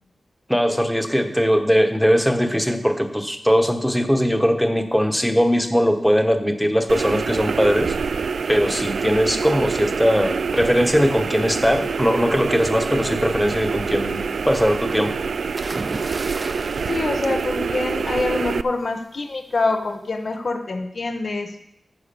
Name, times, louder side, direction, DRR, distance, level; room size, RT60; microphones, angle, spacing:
voice 1, 0.5-7.9 8.5-14.2 14.5-15.1, equal, ahead, 6 dB, 1.1 m, -20 dB
sound 1, 6.9-18.6, right 5 dB, 85° right, 0.3 m, -26 dB
sound 2, 15.6-18.3 19.6-19.9, right 2 dB, 40° right, 0.6 m, -35 dB
voice 2, 16.9-21.6, left 3 dB, 60° left, 5 dB, 1.0 m, -25 dB
13.5 x 4.9 x 6.8 m, 0.81 s
wide cardioid pair, 70°, 0 cm